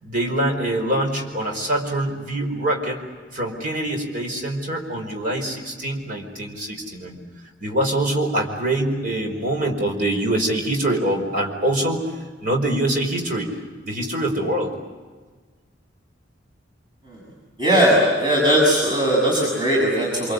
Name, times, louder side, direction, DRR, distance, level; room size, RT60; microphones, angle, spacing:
voice 1, 0.0-3.0 3.3-7.2 7.6-12.1 12.4-13.5 13.8-14.7, right 1 dB, 45° right, 2 dB, 4.9 m, -24 dB
voice 2, 17.6-20.3, equal, 25° right, -4 dB, 6.4 m, -18 dB
27.0 x 25.0 x 8.1 m, 1.4 s
head